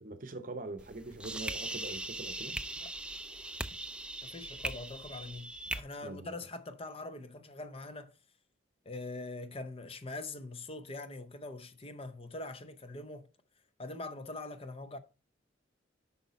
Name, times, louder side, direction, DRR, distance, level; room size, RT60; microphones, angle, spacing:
voice 1, 0.0-2.6 6.0-6.3, right 2 dB, 45° right, 0.8 m, -43 dB
sound 1, 0.8-5.8, right 2 dB, 5° right, 0.4 m, -40 dB
voice 2, 4.2-8.1 8.9-13.3 13.8-15.0, left 2 dB, 30° left, 0.6 m, -43 dB
8.2 x 5.6 x 4.0 m
head